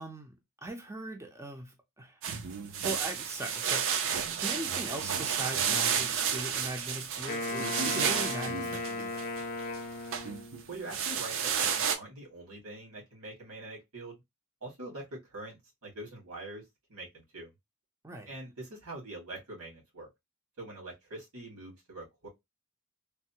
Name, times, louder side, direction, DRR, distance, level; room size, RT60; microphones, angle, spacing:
voice 1, 0.0-2.2 2.8-9.3 18.0-18.3, right 1 dB, 15° right, 0.5 m, -40 dB
sound 1, 2.2-9.8 10.1-12.0, right 7 dB, 65° right, 0.5 m, -31 dB
Wind instrument woodwind instrument, 7.3-10.7, left 3 dB, 40° left, 0.6 m, -36 dB
voice 2, 10.7-14.2 14.6-16.6 16.9-17.5 18.3-20.1 20.6-22.3, right 2 dB, 90° right, 1.9 m, -44 dB
3.3 x 2.0 x 2.7 m
head